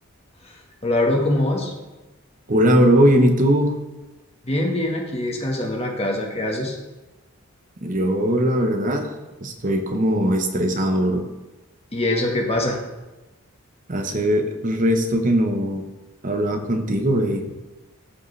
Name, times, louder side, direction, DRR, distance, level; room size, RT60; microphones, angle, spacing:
voice 1, 0.8-1.7 4.4-6.8 11.9-12.8, left 1 dB, 30° left, 0 dB, 1.4 m, -23 dB
voice 2, 2.5-3.8 7.8-9.1 9.4-11.3 13.9-15.8 16.2-17.5, equal, 35° right, 5 dB, 0.9 m, -20 dB
14.0 x 5.0 x 3.3 m, 1.1 s
head